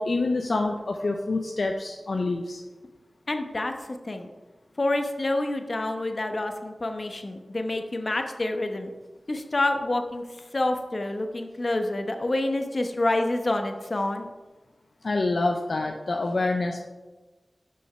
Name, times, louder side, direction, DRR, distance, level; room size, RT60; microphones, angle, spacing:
voice 1, 0.0-2.6 15.0-16.8, left 2 dB, 75° left, 3 dB, 0.6 m, -26 dB
voice 2, 3.3-3.7 4.0-4.3 4.8-8.9 9.3-10.2 10.5-14.3, left 2 dB, 55° left, 5 dB, 0.9 m, -27 dB
6.6 x 5.4 x 5.5 m, 1.2 s
cardioid pair, 45°, 0 cm